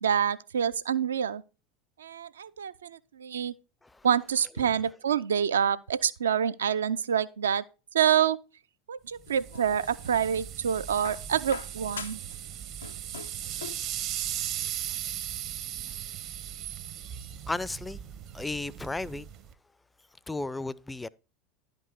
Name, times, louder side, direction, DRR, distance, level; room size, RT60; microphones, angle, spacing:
voice 1, 0.0-1.4 2.0-3.5 4.0-7.6 7.9-8.4 8.9-12.2, right 8 dB, 75° right, 0.4 m, -27 dB
sound 1, 9.3-10.2 11.0-12.4 12.6-13.9 15.0-15.1, left 6 dB, 80° left, 0.4 m, -43 dB
sound 2, 9.3-19.5, right 11 dB, 50° right, 0.7 m, -37 dB
voice 2, 17.5-18.0 18.3-19.3 20.3-21.1, left 2 dB, 10° left, 0.4 m, -33 dB
11.0 x 5.3 x 4.5 m
figure-of-eight pair, 75°, 0 cm